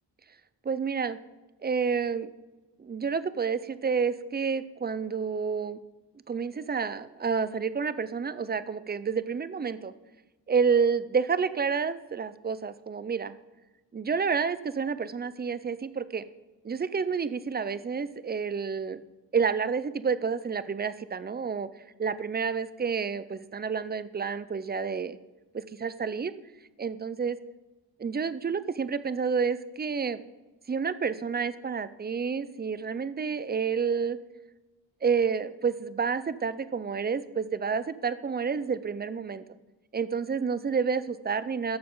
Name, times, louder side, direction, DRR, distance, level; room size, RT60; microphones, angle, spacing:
voice 1, 0.6-1.2 1.6-2.3 2.8-5.8 6.3-9.9 10.5-13.4 13.9-16.2 16.6-19.0 19.3-25.2 25.5-26.3 26.8-27.4 28.0-30.2 30.7-34.2 35.0-39.4 39.9-41.8, right 6 dB, 25° right, 14 dB, 0.4 m, -29 dB
12.0 x 6.8 x 3.9 m, 1.1 s
wide cardioid pair, 105°, 44 cm